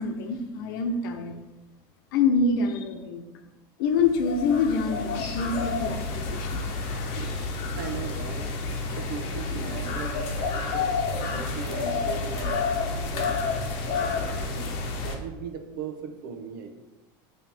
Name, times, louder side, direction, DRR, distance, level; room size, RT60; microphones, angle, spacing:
voice 1, 0.0-1.4 2.1-3.2 3.8-6.6, left 4 dB, 85° left, 5 dB, 0.8 m, -26 dB
sound 1, 4.0-15.2, left 4 dB, 50° left, 0.8 m, -30 dB
voice 2, 7.7-8.5 9.0-13.4 13.9-14.7 15.0-16.7, right 5 dB, 85° right, 6 dB, 0.8 m, -38 dB
8.8 x 3.2 x 3.5 m, 1.1 s
cardioid pair, 170°, 11 cm